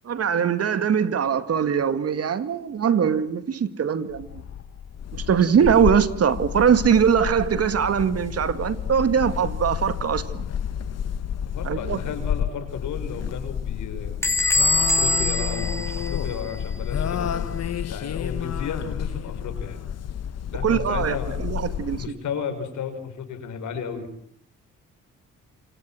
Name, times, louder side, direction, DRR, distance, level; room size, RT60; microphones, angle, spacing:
voice 1, 0.1-4.3 5.3-10.4 11.6-12.0 20.6-22.0, right 7 dB, 55° right, 12 dB, 2.1 m, -22 dB
sound 1, 4.1-22.1, left 8 dB, 55° left, 1.5 m, -30 dB
voice 2, 11.4-14.2 14.5-17.5 17.9-19.8 20.5-21.4 22.0-24.1, left 6 dB, 75° left, 8 dB, 5.9 m, -34 dB
Bell / Squeak, 14.2-16.7, left 2 dB, 10° left, 4.0 m, -24 dB
27.5 x 27.0 x 7.8 m, 0.69 s
cardioid pair, 90°, 30 cm